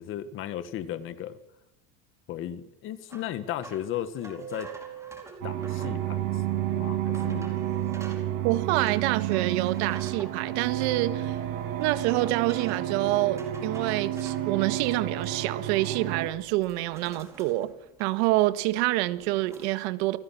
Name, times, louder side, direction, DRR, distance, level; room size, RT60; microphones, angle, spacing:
voice 1, 0.0-1.4 2.3-4.7 5.4-6.4 6.7-7.5, left 11 dB, 30° left, 1.8 m, -35 dB
sound 1, 3.1-6.0 6.6-6.7 7.1-8.3 8.9-10.6 11.8-12.9 13.4-14.5 14.9-15.6 15.9-16.1 16.5-18.4 18.7-19.7, right 2 dB, 5° right, 4.6 m, -49 dB
Musical instrument, 4.4-13.4, right 9 dB, 35° right, 7.3 m, -48 dB
sound 2, 5.4-16.3, right 12 dB, 75° right, 5.9 m, -30 dB
voice 2, 8.4-11.4 11.8-17.7 18.0-20.2, right 18 dB, 60° right, 1.8 m, -27 dB
29.0 x 19.5 x 6.2 m
cardioid pair, 180°, 38 cm